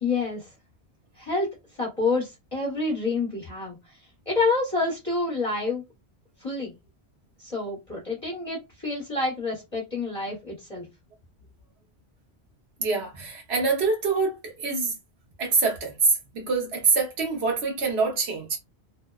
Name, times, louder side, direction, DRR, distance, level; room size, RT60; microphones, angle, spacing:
voice 1, 0.0-0.5 1.2-3.8 4.3-5.8 6.4-6.7 7.4-10.9, left 3 dB, 35° left, 1.0 m, -28 dB
voice 2, 12.8-14.9 15.4-16.0 16.3-18.6, right 4 dB, 80° right, 1.1 m, -25 dB
2.7 x 2.1 x 2.3 m
omnidirectional pair, 1.1 m